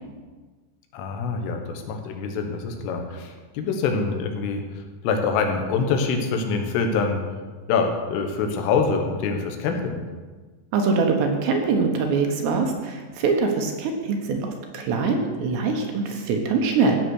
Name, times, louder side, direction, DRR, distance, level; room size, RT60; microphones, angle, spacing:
voice 1, 0.9-4.6 5.0-7.2 7.7-10.0, left 5 dB, 85° left, 4 dB, 3.8 m, -25 dB
voice 2, 10.7-17.0, right 4 dB, 70° right, 3 dB, 3.1 m, -23 dB
15.5 x 6.6 x 6.4 m, 1.4 s
omnidirectional pair, 5.6 m